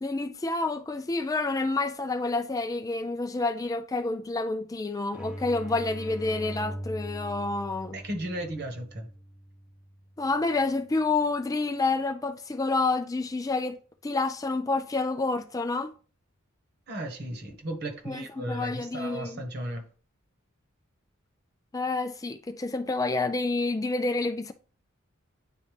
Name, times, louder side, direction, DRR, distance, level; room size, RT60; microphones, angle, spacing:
voice 1, 0.0-8.0 10.2-15.9 18.1-19.4 21.7-24.5, left 3 dB, 15° left, 0.3 m, -29 dB
sound 1, 5.1-10.6, equal, 5° right, 0.9 m, -41 dB
voice 2, 7.9-9.1 16.9-19.8, right 1 dB, 50° right, 1.5 m, -35 dB
9.2 x 4.1 x 3.4 m
head